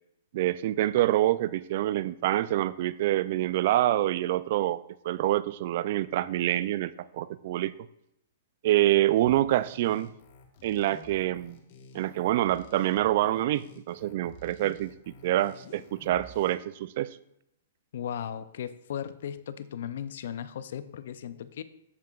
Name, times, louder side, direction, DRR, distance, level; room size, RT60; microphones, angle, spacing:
voice 1, 0.3-7.7 8.6-10.1 10.6-11.6 11.9-17.2, right 14 dB, 50° right, 17 dB, 0.3 m, -26 dB
sound 1, 9.2-16.5, left 1 dB, 45° left, 1.3 m, -51 dB
voice 2, 17.9-21.6, left 9 dB, 65° left, 13 dB, 0.5 m, -36 dB
14.5 x 5.6 x 2.4 m, 0.79 s
hypercardioid pair, 150°, 0 cm